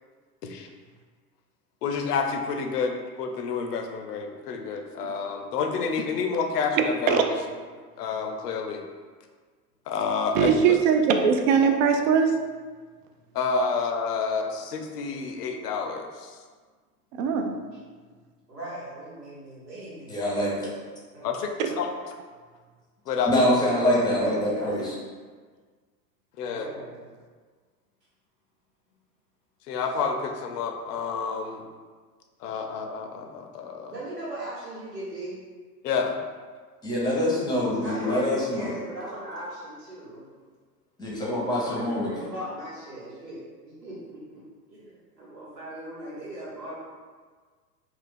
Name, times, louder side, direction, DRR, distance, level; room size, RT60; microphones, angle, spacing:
voice 1, 1.8-7.3 8.0-8.8 9.9-10.8 13.3-16.4 21.2-21.9 23.1-23.4 26.4-26.7 29.7-31.6 32.4-33.9 35.8-36.2, left 5 dB, 75° left, 4 dB, 0.6 m, -29 dB
voice 2, 10.3-12.3 17.2-17.5, right 6 dB, 55° right, 5 dB, 0.5 m, -20 dB
voice 3, 18.5-20.4 21.1-21.3 23.8-24.7 26.4-27.0 33.9-35.4 37.8-40.3 41.4-44.4 44.7-46.8, right 1 dB, 85° right, -9 dB, 1.2 m, -38 dB
voice 4, 20.1-20.7 23.3-24.9 36.8-38.7 41.0-42.3, left 1 dB, 10° left, -5 dB, 0.7 m, -25 dB
2.5 x 2.3 x 3.6 m, 1.5 s
hypercardioid pair, 90°, 48 cm